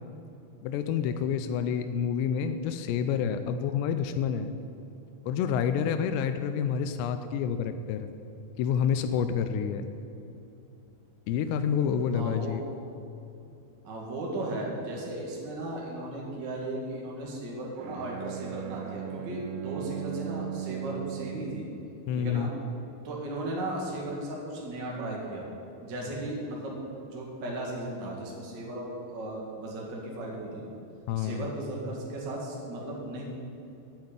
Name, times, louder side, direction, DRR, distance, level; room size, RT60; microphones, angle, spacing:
voice 1, 0.6-4.6 5.2-8.1 8.6-9.8 11.3-12.6 22.1-22.5 31.1-31.5, left 7 dB, 85° left, 9 dB, 2.6 m, -28 dB
voice 2, 12.1-12.6 13.8-21.7 22.1-22.5 23.0-25.4 25.8-26.7 27.1-30.7 31.2-33.2, right 1 dB, 70° right, -3 dB, 1.0 m, -36 dB
Bowed string instrument, 17.8-21.8, right 12 dB, 85° right, 2.5 m, -37 dB
9.2 x 7.9 x 8.9 m, 2.7 s
omnidirectional pair, 5.4 m